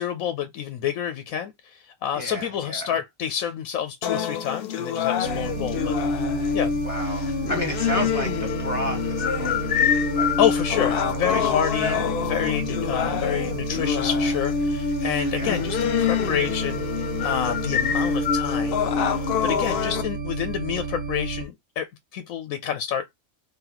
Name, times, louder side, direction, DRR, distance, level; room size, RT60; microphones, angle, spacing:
voice 1, 0.0-6.0 6.5-6.8 7.9-8.0 10.4-16.9 17.2-18.8 19.0-23.1, left 9 dB, 90° left, 1.0 m, -28 dB
voice 2, 2.1-2.9 6.8-10.3 11.1-12.0 15.3-15.6, equal, 25° left, 1.6 m, -32 dB
sound 1, 4.0-20.0, left 7 dB, 60° left, 0.6 m, -26 dB
sound 2, 5.2-21.5, right 4 dB, 75° right, 1.2 m, -32 dB
3.9 x 3.3 x 2.9 m
omnidirectional pair, 1.4 m